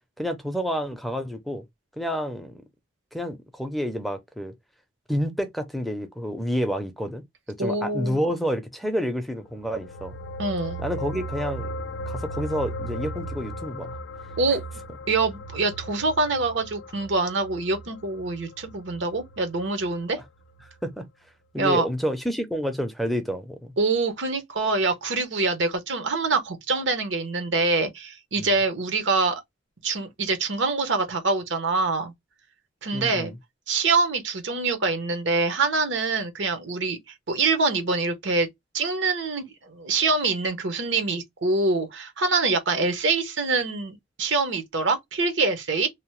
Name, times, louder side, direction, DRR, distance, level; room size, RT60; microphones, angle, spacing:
voice 1, 0.2-1.6 2.0-2.6 3.1-4.5 5.1-7.2 7.6-10.1 10.8-11.7 12.1-14.0 20.8-21.1 21.5-23.7 28.4-28.5 32.9-33.4, equal, ahead, 0.5 m, -29 dB
voice 2, 7.6-8.2 10.4-10.8 14.4-14.6 15.1-20.2 21.6-21.8 23.8-29.4 29.8-32.1 32.8-33.3 33.7-37.0 37.3-38.5 38.7-45.9, right 3 dB, 75° right, 0.9 m, -25 dB
sound 1, 9.5-20.2 20.5-20.7, equal, 65° left, 0.4 m, -37 dB
2.8 x 2.0 x 3.0 m
head